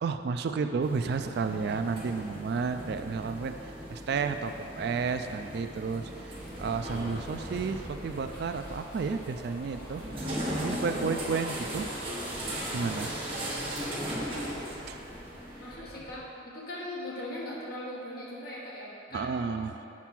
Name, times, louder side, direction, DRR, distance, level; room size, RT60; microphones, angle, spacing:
voice 1, 0.0-11.9 12.7-13.1 14.9-15.0 19.1-19.9, right 5 dB, 55° right, 8 dB, 0.3 m, -32 dB
sound 1, 0.8-15.7, equal, 30° right, 1.2 m, -38 dB
sound 2, 6.3-16.2, equal, 20° left, 1.5 m, -47 dB
voice 2, 14.2-14.6 15.6-19.5, left 1 dB, 50° left, -5 dB, 1.5 m, -40 dB
7.4 x 4.5 x 6.0 m, 2.8 s
head